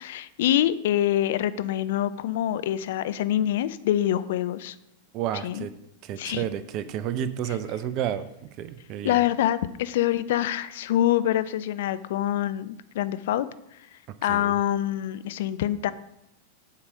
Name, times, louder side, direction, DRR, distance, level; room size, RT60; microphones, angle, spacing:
voice 1, 0.0-4.8 5.4-5.7 6.2-6.4 9.0-13.5 14.2-15.9, left 12 dB, 55° left, 14 dB, 0.4 m, -25 dB
voice 2, 5.1-5.7 6.0-9.2 14.3-14.6, right 10 dB, 40° right, 13 dB, 0.5 m, -31 dB
8.3 x 4.8 x 6.3 m, 0.82 s
figure-of-eight pair, 90°, 0 cm